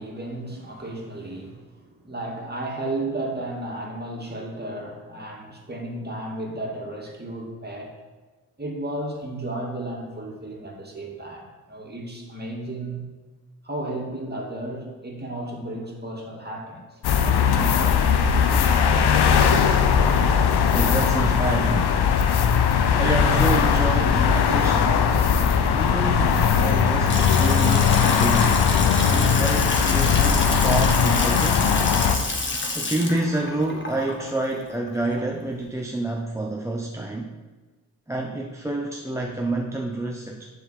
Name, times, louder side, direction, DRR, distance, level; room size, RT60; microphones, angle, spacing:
voice 1, 0.0-7.9 8.6-13.0 13.6-17.0 17.5-17.8, right 1 dB, 20° right, -1 dB, 2.1 m, -33 dB
sound 1, 17.0-32.2, left 7 dB, 60° left, 0.8 m, -19 dB
voice 2, 20.7-21.9 23.0-25.0 25.7-28.6 29.1-31.8 32.7-37.3 38.1-40.5, right 2 dB, 5° right, 0 dB, 0.7 m, -28 dB
Water tap faucet / Sink (filling or washing) / Splash splatter, 26.6-35.5, left 2 dB, 25° left, 1.4 m, -29 dB
7.1 x 3.7 x 6.4 m, 1.3 s
hypercardioid pair, 45°, 45 cm